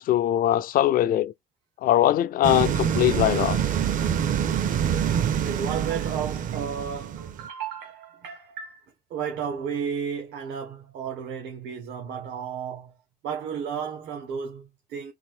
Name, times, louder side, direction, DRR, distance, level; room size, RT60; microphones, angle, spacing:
voice 1, 0.0-1.3 1.8-3.6, left 12 dB, 55° left, 0.5 m, -21 dB
sound 1, 2.4-7.5, right 9 dB, 50° right, 0.7 m, -26 dB
voice 2, 5.1-12.9 13.2-15.1, right 7 dB, 85° right, 1.3 m, -33 dB
4.2 x 2.6 x 3.5 m
cardioid pair, 110°, 17 cm